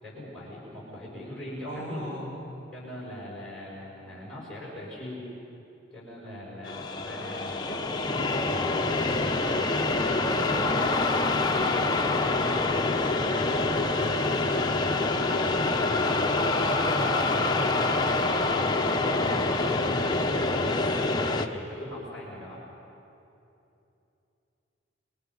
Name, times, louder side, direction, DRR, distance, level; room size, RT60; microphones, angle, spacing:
voice 1, 0.0-2.1 2.7-5.2 5.9-12.6 13.0-16.1 16.5-18.0 18.9-20.8 21.3-22.6, left 1 dB, 5° left, -5 dB, 5.6 m, -41 dB
voice 2, 1.6-2.4 17.4-18.0, equal, 25° right, -5 dB, 6.0 m, -39 dB
sound 1, 6.6-21.5, left 2 dB, 20° left, 0.8 m, -26 dB
29.5 x 23.0 x 5.5 m, 2.8 s
head